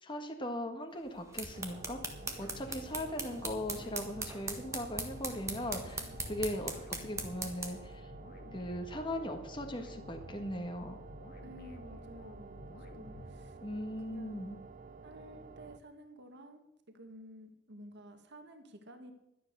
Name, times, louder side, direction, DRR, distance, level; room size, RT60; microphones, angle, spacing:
voice 1, 0.0-6.7 7.0-8.1 8.5-11.0 13.6-14.6, left 1 dB, 25° left, 4 dB, 1.5 m, -39 dB
sound 1, 1.1-7.9, right 3 dB, 15° right, 1.6 m, -41 dB
sound 2, 1.5-15.8, right 4 dB, 40° right, 0.6 m, -51 dB
sound 3, 1.6-13.9, left 1 dB, 50° left, 1.9 m, -52 dB
voice 2, 2.6-3.2 11.4-14.5 15.0-19.1, equal, 60° right, 6 dB, 1.8 m, -53 dB
12.5 x 10.0 x 6.7 m, 0.88 s
head